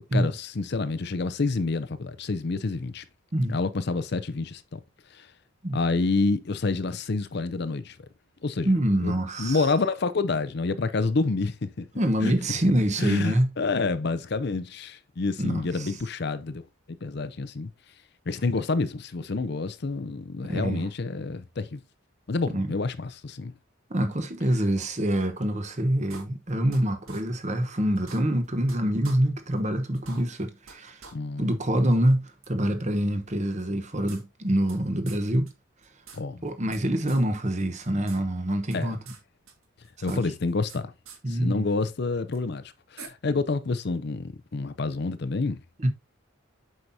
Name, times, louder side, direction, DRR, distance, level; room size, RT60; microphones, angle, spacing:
voice 1, 0.1-3.0 3.5-4.8 5.1-5.3 5.7-8.0 8.4-8.7 9.0-11.9 12.2-12.3 13.0-16.6 17.0-17.7 18.3-21.8 22.3-23.5 31.1-31.5 36.1-36.4 38.7-39.0 40.0-40.9 41.3-45.6, left 3 dB, 50° left, 0.5 m, -28 dB
voice 2, 8.6-9.7 11.9-13.5 15.4-15.9 20.5-20.9 22.5-22.7 23.9-31.0 31.4-35.5 36.4-39.0 40.0-40.2 41.2-41.6 45.8-45.9, right 1 dB, 35° right, 1.0 m, -25 dB
sound 1, 26.1-26.8 27.1-27.2 27.6-27.7 28.0-28.8 29.0-29.2 29.6-29.7 29.9-30.8 31.0-31.1 31.5-31.6 32.4-32.5 33.6-34.8 35.1-35.2 35.5-35.6 35.8-36.8 37.1-37.2 37.6-38.2 38.5-39.2 39.5-40.8 41.1-41.2 42.3-42.4 43.0-43.1, right 5 dB, 85° right, 1.8 m, -46 dB
7.9 x 5.6 x 2.7 m
head